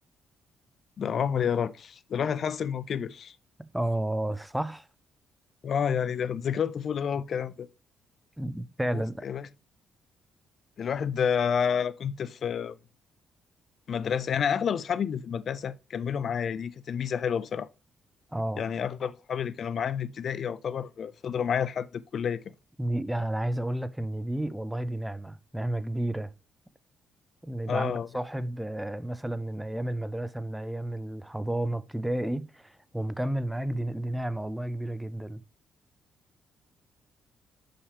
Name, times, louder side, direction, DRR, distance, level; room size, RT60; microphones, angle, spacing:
voice 1, 1.0-3.4 5.6-7.7 8.9-9.5 10.8-12.8 13.9-17.7 18.6-22.4 27.7-28.1, left 7 dB, 55° left, 0.4 m, -29 dB
voice 2, 3.6-4.9 8.4-9.2 18.3-18.6 22.8-26.3 27.4-35.4, right 1 dB, 5° right, 0.4 m, -31 dB
7.0 x 5.6 x 3.2 m
cardioid pair, 90°, 0 cm